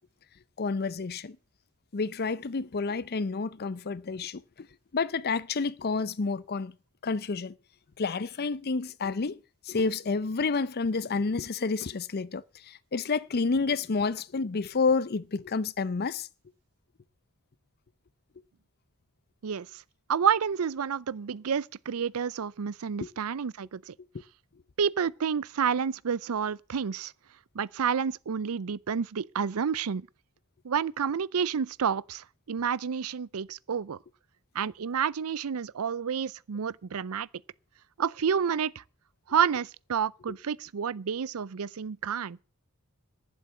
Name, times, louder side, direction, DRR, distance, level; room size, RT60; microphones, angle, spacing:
voice 1, 0.6-1.4 1.9-4.7 4.9-6.7 7.0-7.5 8.0-9.4 9.6-16.3 23.0-23.1, left 4 dB, 45° left, 0.6 m, -29 dB
voice 2, 19.4-19.8 20.1-23.9 24.8-27.1 27.5-30.0 30.6-34.0 34.5-37.3 38.0-38.8 39.3-42.4, right 7 dB, 75° right, 0.5 m, -29 dB
11.5 x 7.3 x 8.2 m
head